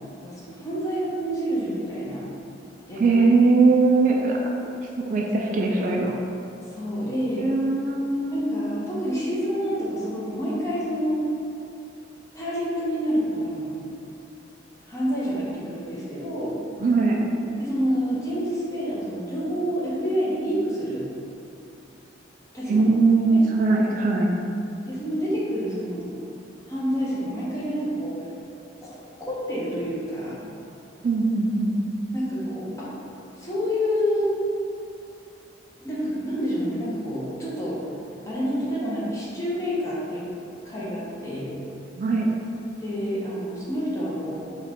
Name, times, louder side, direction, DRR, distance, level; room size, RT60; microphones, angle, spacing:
voice 1, 0.2-2.2 2.9-3.2 6.7-7.5 8.3-11.2 12.3-13.7 14.8-16.5 17.6-21.1 22.5-22.9 23.3-23.4 24.9-26.2 26.7-28.1 28.8-28.9 29.2-30.4 32.1-32.9 33.4-34.3 35.8-37.8 38.3-40.3 40.6-41.5 42.8-44.5, equal, 20° left, -8 dB, 0.9 m, -28 dB
voice 2, 3.0-4.4 5.0-6.2 7.4-8.4 16.8-17.3 22.7-24.3 31.0-31.7 42.0-42.3, right 3 dB, 45° right, 0 dB, 0.3 m, -20 dB
4.2 x 2.4 x 3.6 m, 2.6 s
head